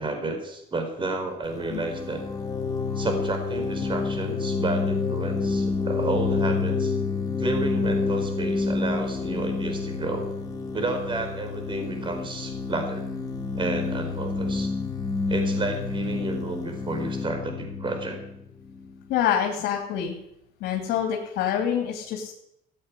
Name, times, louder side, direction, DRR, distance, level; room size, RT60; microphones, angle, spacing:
voice 1, 0.0-2.2 2.9-6.9 7.4-10.3 10.7-13.1 13.5-14.7 15.3-18.2, right 2 dB, 30° right, 5 dB, 4.5 m, -31 dB
sound 1, 1.5-19.0, left 4 dB, 20° left, 3.7 m, -28 dB
voice 2, 19.1-20.1 20.6-22.3, left 9 dB, 85° left, 2 dB, 2.8 m, -26 dB
15.0 x 8.7 x 9.9 m, 0.78 s
cardioid pair, 110°, 17 cm